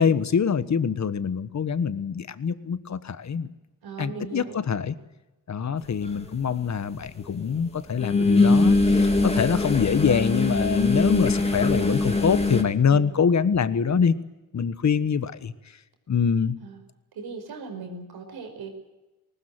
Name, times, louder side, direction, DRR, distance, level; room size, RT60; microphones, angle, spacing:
voice 1, 0.0-3.5 4.0-4.9 5.5-14.1 14.5-15.5 16.1-16.5, left 6 dB, 50° left, 14 dB, 1.4 m, -24 dB
voice 2, 3.8-4.6 12.9-13.1 16.6-16.8 17.1-18.7, right 4 dB, 90° right, 6 dB, 5.4 m, -38 dB
sound 1, 6.1-6.2 8.0-12.6, left 2 dB, 15° left, 3.1 m, -22 dB
20.0 x 20.0 x 9.1 m, 1.1 s
cardioid pair, 90°, 36 cm